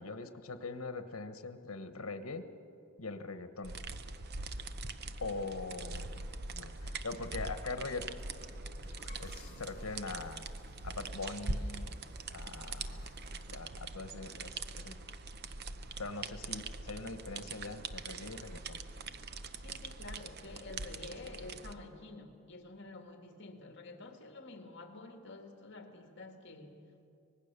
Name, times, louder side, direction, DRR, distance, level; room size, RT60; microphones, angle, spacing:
voice 1, 0.0-2.4 3.0-3.7 5.2-6.1 6.5-8.2 9.2-10.5 10.8-11.9 12.3-13.1 13.5-15.0 16.0-18.8, left 3 dB, 85° left, 10 dB, 1.3 m, -42 dB
sound 1, 3.6-21.7, right 3 dB, 50° right, 0.8 m, -43 dB
Human group actions, 5.8-13.6, left 2 dB, 35° left, 4.4 m, -61 dB
voice 2, 19.5-27.1, left 3 dB, 55° left, 5 dB, 2.0 m, -49 dB
25.0 x 19.5 x 6.8 m, 2.6 s
head